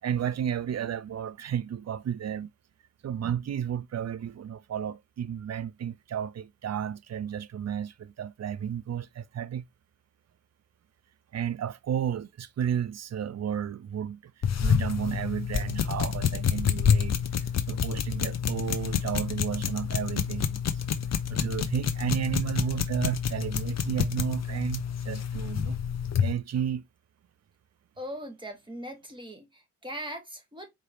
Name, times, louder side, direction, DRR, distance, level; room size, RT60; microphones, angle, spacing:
voice 1, 0.0-2.5 3.0-9.6 11.3-14.3 14.6-17.2 17.7-20.8 21.3-25.8 26.2-26.9, right 9 dB, 40° right, 0.6 m, -32 dB
sound 1, 14.4-26.3, left 7 dB, 40° left, 0.8 m, -28 dB
voice 2, 28.0-30.7, equal, 10° right, 1.9 m, -40 dB
4.6 x 3.1 x 2.9 m
hypercardioid pair, 40°, 40 cm